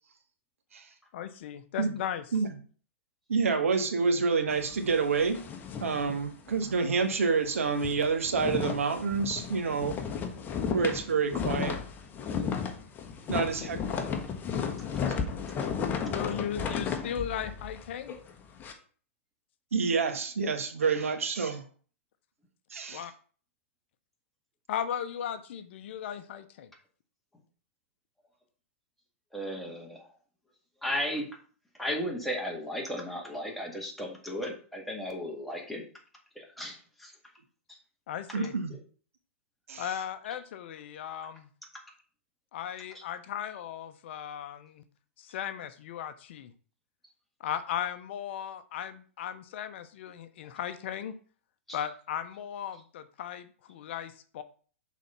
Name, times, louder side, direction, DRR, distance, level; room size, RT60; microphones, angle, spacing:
voice 1, 1.1-2.2 13.3-13.7 16.1-18.2 22.9-23.1 24.7-26.7 38.1-38.5 39.8-41.5 42.5-44.8 45.2-46.5 47.4-51.2 51.7-54.4, left 9 dB, 60° left, 11 dB, 0.7 m, -37 dB
voice 2, 3.3-5.4 5.8-10.0 10.7-11.8 13.3-13.8 19.7-21.6 22.7-23.0 38.3-38.7 39.7-39.9, right 5 dB, 80° right, 6 dB, 1.4 m, -28 dB
sound 1, 4.5-6.8 7.1-7.2 7.6-18.7, left 6 dB, 25° left, 1.1 m, -34 dB
voice 3, 29.3-30.1 30.8-31.3 31.8-35.8 36.4-37.1 37.7-37.8 40.3-40.4 42.9-43.0 51.7-51.8, equal, ahead, -1 dB, 2.0 m, -35 dB
6.2 x 4.1 x 5.7 m, 0.42 s
hypercardioid pair, 120°, 7 cm